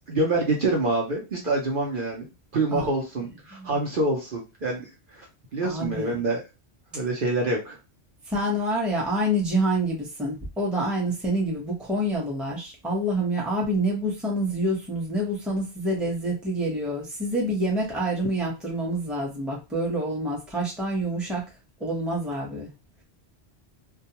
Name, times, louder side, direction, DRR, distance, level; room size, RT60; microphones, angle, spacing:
voice 1, 0.1-2.3 2.5-5.2 5.5-6.4 6.9-7.8, right 2 dB, 55° right, -1 dB, 0.8 m, -26 dB
voice 2, 5.6-6.2 8.3-21.4 21.8-22.7, right 1 dB, ahead, -2 dB, 0.7 m, -27 dB
2.3 x 2.2 x 2.9 m, 0.27 s
omnidirectional pair, 1.1 m